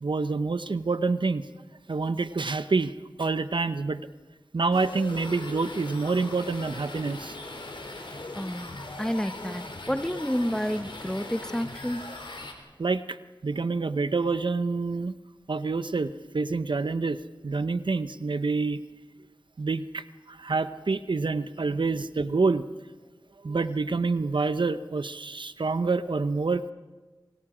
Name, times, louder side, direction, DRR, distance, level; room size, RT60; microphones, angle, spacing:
voice 1, 0.0-1.5 1.9-2.9 3.2-4.0 4.5-7.4 12.8-13.2 13.4-15.1 15.5-17.2 17.4-18.8 19.6-22.6 23.4-26.6, right 4 dB, 70° right, 12 dB, 0.8 m, -27 dB
sound 1, 4.7-12.5, left 2 dB, 75° left, 3.3 m, -40 dB
voice 2, 8.3-12.1 21.7-21.8, equal, 5° left, 10 dB, 1.1 m, -30 dB
27.0 x 26.0 x 5.0 m, 1.3 s
wide cardioid pair, 45°, 9 cm